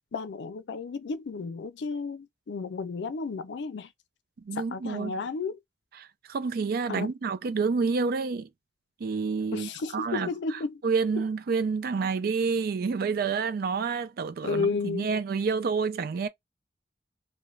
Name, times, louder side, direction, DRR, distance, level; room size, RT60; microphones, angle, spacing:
voice 1, 0.1-3.9 4.5-5.6 6.9-7.1 9.5-10.8 11.2-11.3 14.4-15.1, left 4 dB, 80° left, 0.4 m, -32 dB
voice 2, 4.5-5.1 6.0-8.5 9.0-10.3 10.8-16.3, right 5 dB, 60° right, 0.4 m, -28 dB
2.3 x 2.1 x 3.1 m
head